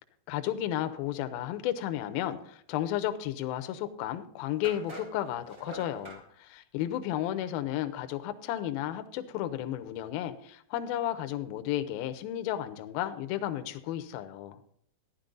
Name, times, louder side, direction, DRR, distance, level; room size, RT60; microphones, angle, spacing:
voice 1, 0.3-14.6, left 12 dB, 75° left, 9 dB, 2.3 m, -33 dB
sound 1, 3.8-3.9 4.6-6.2, right 2 dB, 35° right, 1.4 m, -45 dB
14.0 x 10.5 x 3.9 m, 0.66 s
omnidirectional pair, 4.9 m